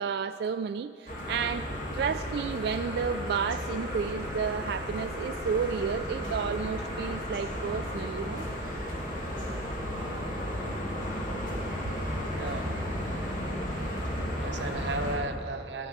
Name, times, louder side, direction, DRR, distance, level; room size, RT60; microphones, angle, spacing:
voice 1, 0.0-1.7 1.9-8.5 12.1-12.3, right 6 dB, 65° right, 9 dB, 0.3 m, -31 dB
sound 1, 1.1-15.2, equal, 50° left, 2.6 m, -34 dB
voice 2, 12.3-12.9 14.1-15.9, right 2 dB, 90° right, 7 dB, 0.9 m, -35 dB
13.5 x 9.8 x 6.6 m, 2.6 s
head